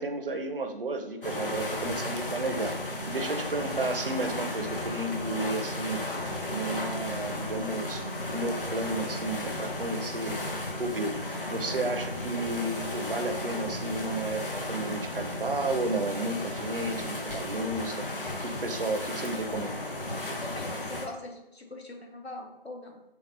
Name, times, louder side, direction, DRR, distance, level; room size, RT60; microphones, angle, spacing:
voice 1, 0.0-2.7 3.1-6.0 6.5-8.1 8.3-10.4 10.8-11.2 11.5-18.1 18.4-19.9, right 2 dB, 60° right, 6 dB, 0.6 m, -32 dB
sound 1, 1.2-21.1, left 1 dB, 60° left, 0.9 m, -35 dB
sound 2, 1.5-17.7, equal, 15° left, 1.1 m, -42 dB
voice 2, 3.1-3.4 20.4-23.0, left 2 dB, 80° left, 2 dB, 1.1 m, -42 dB
6.7 x 2.3 x 2.5 m, 0.94 s
figure-of-eight pair, 155°, 31 cm